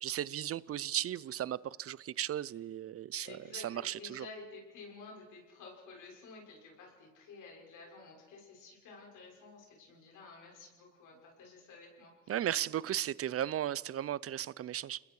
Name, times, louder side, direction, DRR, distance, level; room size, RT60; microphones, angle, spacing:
voice 1, 0.0-4.3 12.3-15.0, right 11 dB, 50° right, 0.6 m, -36 dB
voice 2, 3.2-12.4, left 3 dB, 85° left, 6.4 m, -52 dB
28.5 x 21.0 x 4.8 m
cardioid pair, 90°, 30 cm